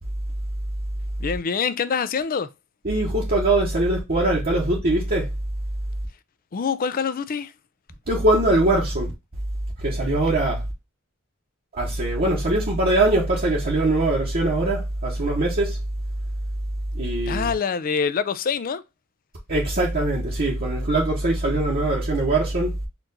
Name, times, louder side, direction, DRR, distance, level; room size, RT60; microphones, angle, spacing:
voice 1, 1.2-2.5 6.5-7.5 17.3-18.8, left 6 dB, 40° left, 0.4 m, -25 dB
voice 2, 2.8-5.3 8.1-9.1 9.8-10.7 11.7-15.8 16.9-17.5 19.5-22.8, right 2 dB, 45° right, 1.0 m, -22 dB
4.4 x 2.5 x 3.8 m
head